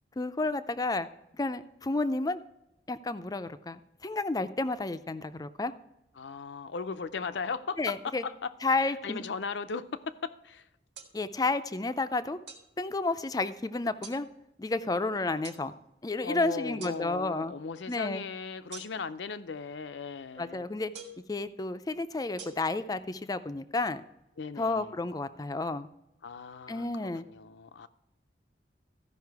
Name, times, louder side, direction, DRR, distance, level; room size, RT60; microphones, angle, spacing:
voice 1, 0.2-1.1 1.3-2.4 2.9-5.7 7.8-8.2 8.6-9.2 11.1-12.4 12.8-14.3 14.6-15.7 16.0-17.5 17.9-18.2 20.4-20.9 21.3-24.0 24.6-25.9 26.7-27.3, left 3 dB, 20° left, 0.4 m, -31 dB
voice 2, 6.2-8.5 8.8-10.6 16.2-20.6 24.4-24.9 26.2-27.9, left 5 dB, 80° left, 0.5 m, -37 dB
sound 1, 10.9-11.1 12.5-12.7 14.0-14.2 15.4-15.6 16.8-17.0 18.7-19.2 20.9-21.3 22.4-22.5, right 5 dB, 75° right, 1.5 m, -45 dB
14.0 x 5.5 x 4.7 m
head